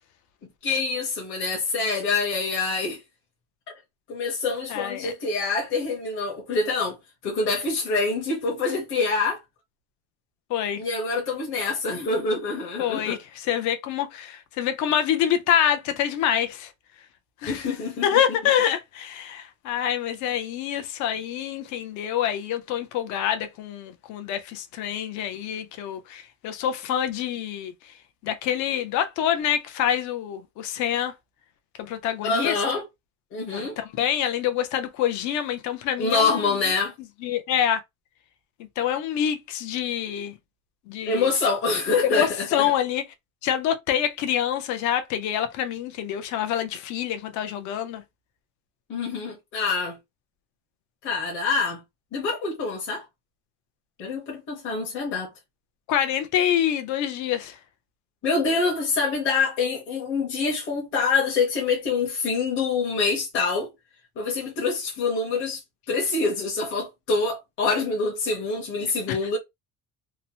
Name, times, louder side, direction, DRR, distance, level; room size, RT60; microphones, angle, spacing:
voice 1, 0.6-3.0 4.1-7.0 7.2-9.4 10.8-13.2 17.5-18.2 32.2-32.8 33.3-33.8 36.0-36.9 41.0-42.7 48.9-50.0 51.0-51.8 52.1-53.0 54.0-55.3 58.2-63.7 64.2-65.6 65.9-69.4, left 4 dB, 35° left, 0.9 m, -26 dB
voice 2, 4.7-5.1 10.5-10.8 12.8-16.7 17.4-17.7 18.0-27.7 28.2-31.1 31.8-32.6 33.5-36.4 37.2-37.8 38.8-40.3 40.9-41.3 42.0-43.0 43.4-48.0 55.9-57.6 69.1-69.2, left 10 dB, 55° left, 0.6 m, -26 dB
2.9 x 2.0 x 2.7 m
cardioid pair, 175°, 35 cm